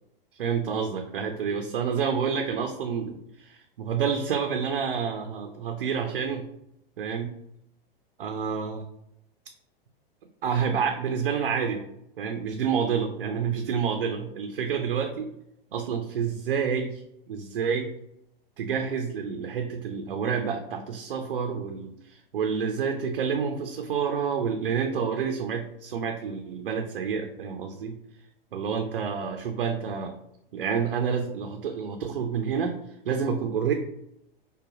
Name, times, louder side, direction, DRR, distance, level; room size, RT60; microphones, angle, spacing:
voice 1, 0.3-6.5 7.0-7.3 8.2-8.8 10.4-11.8 12.2-15.3 15.7-17.9 18.6-28.2 28.5-30.1 30.5-33.7, right 6 dB, 70° right, 4 dB, 0.5 m, -29 dB
4.9 x 2.2 x 2.4 m, 0.80 s
figure-of-eight pair, 100°, 29 cm